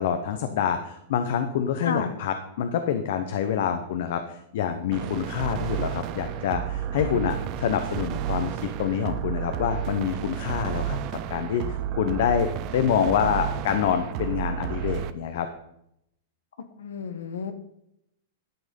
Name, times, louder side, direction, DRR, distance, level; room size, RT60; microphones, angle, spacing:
voice 1, 0.0-15.5, left 8 dB, 65° left, 8 dB, 1.0 m, -27 dB
voice 2, 1.8-2.1 16.8-17.5, left 6 dB, 90° left, 9 dB, 1.2 m, -31 dB
sound 1, 4.9-15.1, right 10 dB, 40° right, 0.7 m, -31 dB
12.0 x 6.3 x 5.3 m, 0.78 s
supercardioid pair, 140°, 0 cm